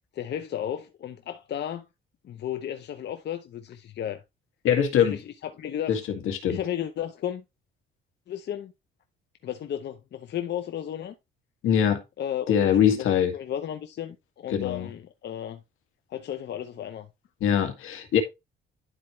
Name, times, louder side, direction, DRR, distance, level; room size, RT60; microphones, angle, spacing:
voice 1, 0.1-1.9 2.2-4.2 5.1-6.0 6.5-7.4 8.3-8.7 9.4-11.1 12.2-15.6 16.1-17.1, left 10 dB, 55° left, 0.8 m, -34 dB
voice 2, 4.6-5.2 5.9-6.0 6.3-6.6 11.6-12.0 12.5-13.3 14.5-14.9 17.4-18.2, left 9 dB, 80° left, 2.0 m, -22 dB
11.0 x 4.4 x 3.2 m
cardioid pair, 110°, 21 cm